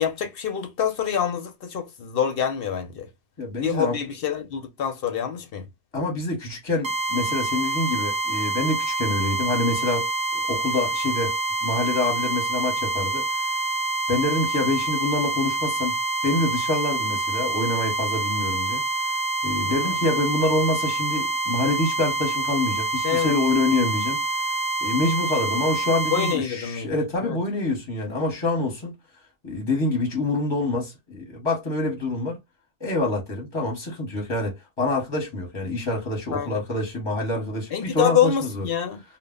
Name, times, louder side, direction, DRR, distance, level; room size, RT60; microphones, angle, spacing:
voice 1, 0.0-3.1 3.6-5.7 19.6-20.0 23.0-23.4 26.1-27.4 36.3-36.6 37.7-39.0, left 8 dB, 60° left, 0.7 m, -26 dB
voice 2, 3.4-4.0 5.9-13.3 14.1-16.0 16.2-18.8 19.4-24.2 24.8-28.9 29.4-32.4 32.8-38.6, left 2 dB, 25° left, 0.8 m, -26 dB
sound 1, 6.8-26.4, right 2 dB, 40° right, 0.4 m, -26 dB
2.1 x 2.1 x 3.5 m
omnidirectional pair, 1.2 m